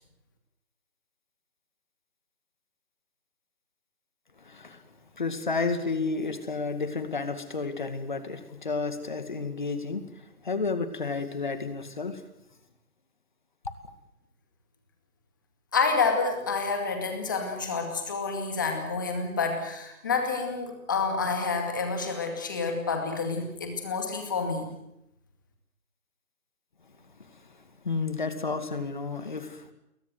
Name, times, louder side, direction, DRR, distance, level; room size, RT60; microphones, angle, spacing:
voice 1, 4.4-4.8 5.2-12.2 27.8-29.7, left 4 dB, 30° left, 10 dB, 2.2 m, -31 dB
voice 2, 15.7-24.7, left 4 dB, 15° left, 4 dB, 2.2 m, -28 dB
28.5 x 22.5 x 7.9 m, 0.83 s
hypercardioid pair, 175°, 45 cm